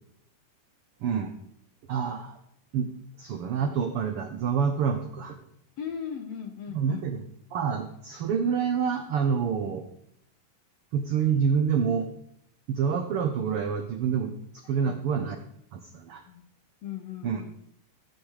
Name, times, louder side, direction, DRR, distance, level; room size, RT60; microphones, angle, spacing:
voice 1, 1.0-1.3 1.9-2.4 2.7-2.9 3.2-5.4 6.7-7.2 7.5-9.8 10.9-12.1 12.7-15.4 15.7-16.2 17.2-17.4, right 7 dB, 75° right, 6 dB, 1.3 m, -27 dB
voice 2, 5.8-7.0 14.8-15.0 16.3-16.4 16.8-17.5, left 8 dB, 65° left, 6 dB, 1.7 m, -37 dB
15.0 x 9.2 x 4.9 m, 0.74 s
omnidirectional pair, 3.9 m